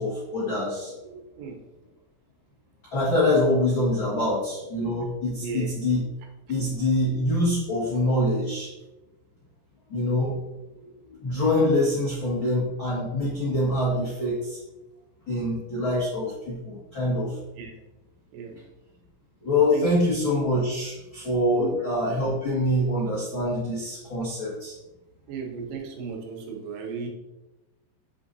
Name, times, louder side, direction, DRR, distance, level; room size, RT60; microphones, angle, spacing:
voice 1, 0.0-1.2 2.9-6.0 6.5-8.7 9.9-10.3 11.1-14.6 15.3-17.4 19.4-24.7, left 1 dB, 60° left, -9 dB, 1.2 m, -25 dB
voice 2, 5.4-5.7 15.9-16.1 17.6-17.7 18.3-18.6 19.7-19.9 21.5-21.9 25.3-27.1, right 5 dB, 80° right, 1 dB, 3.6 m, -35 dB
7.4 x 6.9 x 2.7 m, 1.0 s
omnidirectional pair, 5.7 m